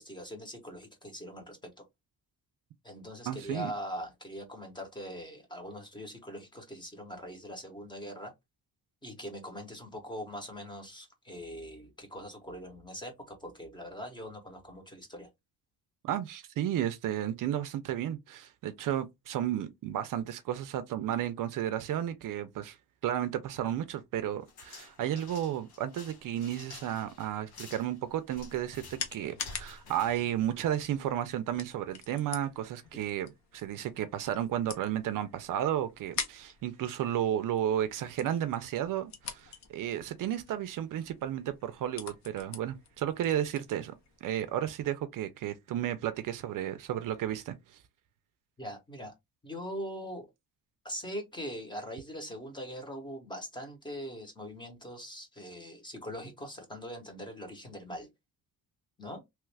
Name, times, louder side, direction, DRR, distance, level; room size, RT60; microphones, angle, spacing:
voice 1, 0.0-1.8 2.8-8.3 9.0-15.3 32.9-33.0 48.6-49.1 49.4-50.3 50.8-58.1 59.0-59.2, equal, 10° left, 0.7 m, -42 dB
voice 2, 3.3-3.7 16.0-22.8 23.0-43.9 44.2-47.8, right 11 dB, 60° right, 0.4 m, -33 dB
sound 1, 24.5-31.0, left 4 dB, 75° left, 1.2 m, -50 dB
sound 2, 28.2-44.6, left 6 dB, 45° left, 0.7 m, -46 dB
3.0 x 2.3 x 3.2 m
cardioid pair, 180°, 38 cm